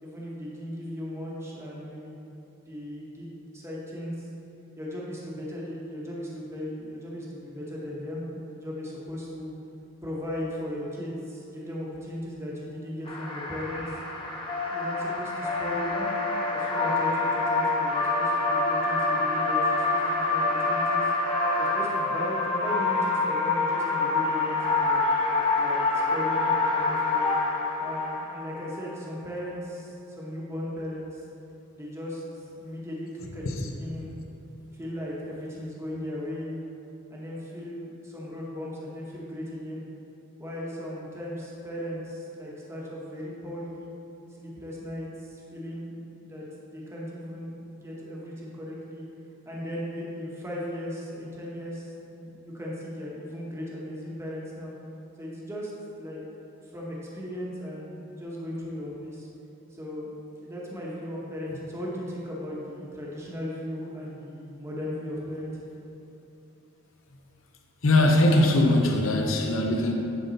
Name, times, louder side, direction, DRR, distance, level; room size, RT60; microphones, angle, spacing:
voice 1, 0.0-4.3 4.8-9.5 10.0-14.0 14.7-16.1 16.5-21.1 21.6-25.1 25.6-27.3 27.8-31.2 31.7-32.2 32.6-34.1 34.7-36.5 37.1-39.8 40.4-43.9 44.4-49.0 49.4-54.7 55.2-55.7 56.0-56.2 56.7-59.3 59.7-60.1 60.4-65.7, equal, 15° right, -5 dB, 1.1 m, -37 dB
sound 1, 13.1-28.8, left 3 dB, 25° left, 0.7 m, -26 dB
voice 2, 67.8-69.9, left 1 dB, 75° left, 2 dB, 0.8 m, -21 dB
10.5 x 3.8 x 4.1 m, 3.0 s
head